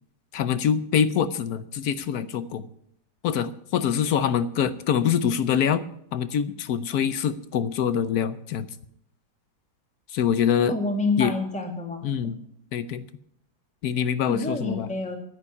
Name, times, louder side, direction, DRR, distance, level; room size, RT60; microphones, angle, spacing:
voice 1, 0.3-2.7 3.2-5.8 6.1-8.7 10.1-10.7 11.2-11.3 12.0-12.4 12.7-13.0 13.8-14.9, left 8 dB, 65° left, 14 dB, 1.2 m, -24 dB
voice 2, 10.7-12.3 14.3-15.2, left 3 dB, 5° left, 3 dB, 1.8 m, -28 dB
10.0 x 9.6 x 9.7 m, 0.70 s
omnidirectional pair, 1.9 m